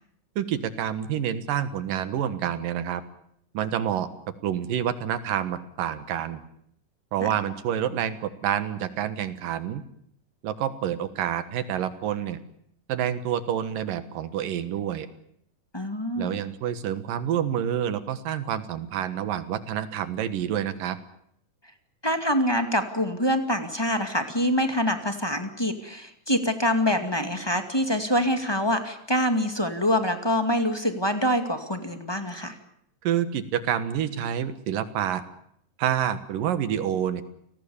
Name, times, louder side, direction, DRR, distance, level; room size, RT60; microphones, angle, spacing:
voice 1, 0.4-3.0 3.5-4.1 4.4-6.4 7.1-9.8 10.4-12.4 12.9-15.1 16.2-21.0 33.0-35.2 35.8-37.2, right 10 dB, 85° right, 12 dB, 3.1 m, -28 dB
voice 2, 15.7-16.4 22.0-32.5, equal, 10° left, 7 dB, 1.6 m, -25 dB
29.5 x 19.0 x 7.2 m, 0.70 s
omnidirectional pair, 3.8 m